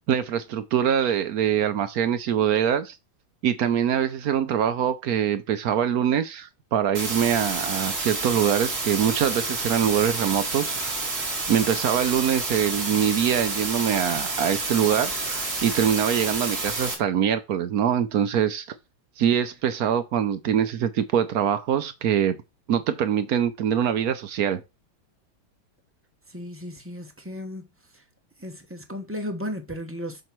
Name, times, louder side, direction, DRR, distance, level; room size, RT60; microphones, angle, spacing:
voice 1, 0.1-2.9 3.4-10.9 11.5-18.7 19.2-22.4 22.7-24.6, right 9 dB, 65° right, 0.9 m, -24 dB
sound 1, 6.9-16.9, right 3 dB, 40° right, 2.6 m, -29 dB
voice 2, 26.3-27.7 27.9-28.0 28.4-30.2, equal, 20° right, 0.4 m, -35 dB
7.6 x 3.0 x 6.0 m
omnidirectional pair, 2.2 m